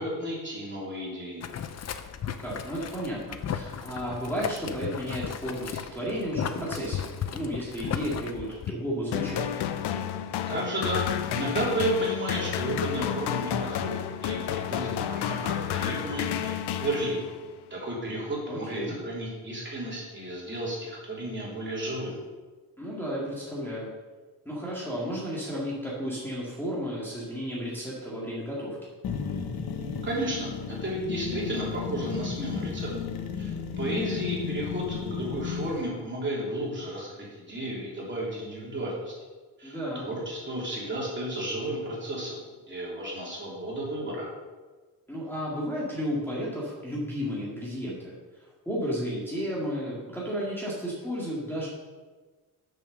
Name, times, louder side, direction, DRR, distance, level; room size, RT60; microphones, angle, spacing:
voice 1, 0.0-1.5 10.5-17.3 17.7-22.2 30.0-32.9 33.4-39.1 39.6-44.3, right 1 dB, 30° right, -5 dB, 3.2 m, -33 dB
Boiling, 1.4-8.7, left 8 dB, 40° left, 0.6 m, -35 dB
voice 2, 2.4-9.6 18.5-19.0 22.8-23.9 24.5-28.8 39.6-40.1 45.1-51.7, equal, 5° left, -7 dB, 2.1 m, -33 dB
sound 1, 9.1-17.5, left 10 dB, 90° left, 0.7 m, -31 dB
sound 2, 29.0-35.8, left 6 dB, 65° left, 1.0 m, -34 dB
6.8 x 6.4 x 6.3 m, 1.3 s
cardioid pair, 120°, 39 cm